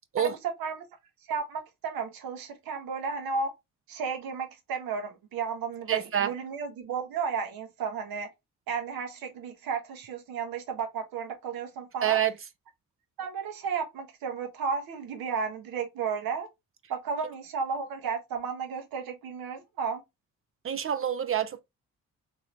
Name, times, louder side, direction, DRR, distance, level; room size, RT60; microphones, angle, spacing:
voice 1, 0.2-0.8 1.3-3.5 3.9-8.3 8.7-12.2 13.2-16.5 16.9-20.0, right 5 dB, 75° right, 1.0 m, -33 dB
voice 2, 5.9-6.3 12.0-12.3 20.6-21.6, right 10 dB, 40° right, 0.4 m, -27 dB
2.9 x 2.7 x 3.0 m
hypercardioid pair, 45°, 36 cm